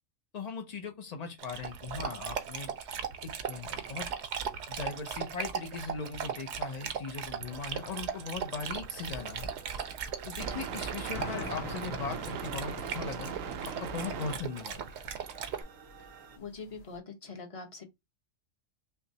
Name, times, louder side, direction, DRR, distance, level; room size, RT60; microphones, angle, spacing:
voice 1, 0.3-2.7 3.2-4.1 4.7-9.5 10.2-13.3 13.6-14.8, left 5 dB, 60° left, 0.4 m, -39 dB
Dog, 1.4-15.6, right 7 dB, 65° right, 0.8 m, -38 dB
sound 1, 7.4-16.4, right 7 dB, 90° right, 1.0 m, -42 dB
sound 2, 11.1-17.0, left 5 dB, 90° left, 1.1 m, -46 dB
voice 2, 16.4-17.8, left 4 dB, 30° left, 0.8 m, -43 dB
5.6 x 2.0 x 2.6 m
omnidirectional pair, 1.3 m